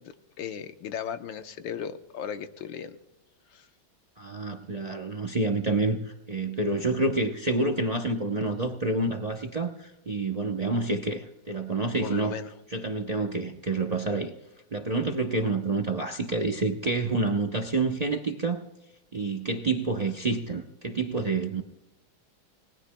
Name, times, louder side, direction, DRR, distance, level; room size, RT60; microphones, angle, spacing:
voice 1, 0.0-3.0 3.5-3.7 12.0-12.5, left 8 dB, 75° left, 8 dB, 1.6 m, -36 dB
voice 2, 4.2-12.4 12.7-14.3 14.7-18.7 19.1-21.6, right 3 dB, 60° right, 3 dB, 0.4 m, -28 dB
29.5 x 19.5 x 2.2 m, 0.93 s
omnidirectional pair, 2.1 m